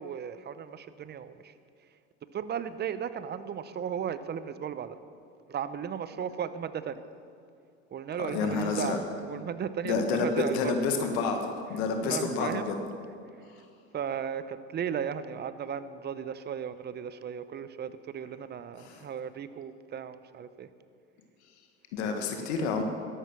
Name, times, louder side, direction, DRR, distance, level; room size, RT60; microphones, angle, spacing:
voice 1, 0.0-1.5 2.3-5.0 5.5-7.0 7.9-9.0 9.3-10.8 11.7-12.7 13.9-20.7 22.0-22.7, right 8 dB, 30° right, 13 dB, 0.8 m, -36 dB
voice 2, 8.2-9.0 9.8-12.8 18.8-19.0 21.9-22.8, left 4 dB, 80° left, 4 dB, 1.6 m, -29 dB
13.5 x 11.5 x 6.0 m, 2.5 s
supercardioid pair, 100°, 32 cm